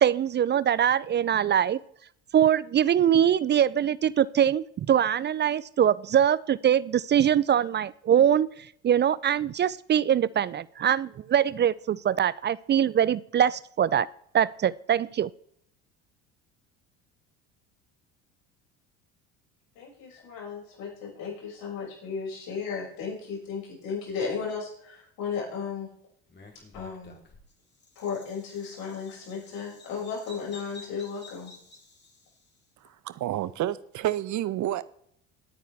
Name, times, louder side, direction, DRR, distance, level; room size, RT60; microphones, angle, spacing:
voice 1, 0.0-1.8 2.3-8.5 8.8-14.1 14.3-15.3, right 9 dB, 25° right, 0.4 m, -23 dB
voice 2, 19.7-25.9 26.7-27.1 28.0-31.5, left 6 dB, 60° left, 6.3 m, -35 dB
Bird vocalization bird call bird song, 26.3-32.6, left 3 dB, 25° left, 3.6 m, -52 dB
voice 3, 33.0-34.8, right 13 dB, 45° right, 1.0 m, -29 dB
21.5 x 9.1 x 3.5 m
hypercardioid pair, 65°, 40 cm